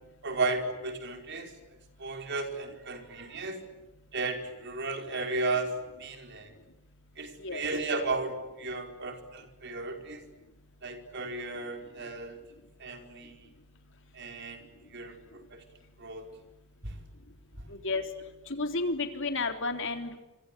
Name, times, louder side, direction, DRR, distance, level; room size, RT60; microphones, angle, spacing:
voice 1, 0.2-1.5 2.0-3.6 4.1-6.5 7.2-10.2 10.8-12.4 12.8-13.5 14.1-15.6 16.0-16.3 16.8-16.9, right 3 dB, 55° right, 5 dB, 4.9 m, -34 dB
voice 2, 17.7-18.0 18.5-20.2, left 3 dB, 60° left, 6 dB, 3.7 m, -31 dB
27.5 x 26.0 x 8.3 m, 1.0 s
head